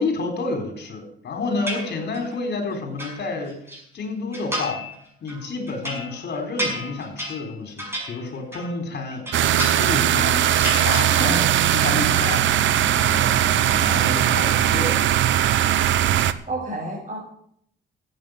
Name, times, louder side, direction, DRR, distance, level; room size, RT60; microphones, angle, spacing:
voice 1, 0.0-3.6 3.9-4.8 5.2-9.3 9.8-10.5 10.8-11.5 11.7-12.4 12.8-15.0, left 3 dB, 55° left, 4 dB, 4.2 m, -29 dB
sound 1, 1.7-2.4 2.7-3.8 4.3-5.0 5.3-8.8 9.1-10.2 10.5-11.5 11.8-12.4, equal, 10° right, 6.4 m, -32 dB
sound 2, 9.3-16.3, right 11 dB, 70° right, 0.8 m, -19 dB
voice 2, 10.6-11.4 16.5-17.2, right 2 dB, 35° right, -5 dB, 5.7 m, -31 dB
14.5 x 8.8 x 6.8 m, 0.68 s
cardioid pair, 90°, 20 cm